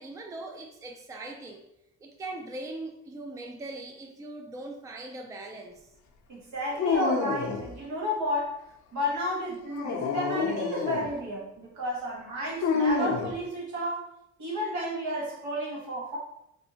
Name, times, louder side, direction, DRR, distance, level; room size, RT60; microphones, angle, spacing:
voice 1, 0.0-1.6 2.0-5.9, right 2 dB, 10° right, 2 dB, 0.4 m, -40 dB
voice 2, 6.3-8.6 8.9-14.0 14.4-16.2, equal, 70° right, -4 dB, 1.3 m, -32 dB
Dog, 6.7-7.7 9.6-11.1 12.6-13.4, left 5 dB, 70° left, 0.6 m, -28 dB
3.4 x 2.6 x 2.8 m, 0.81 s
cardioid pair, 90°, 30 cm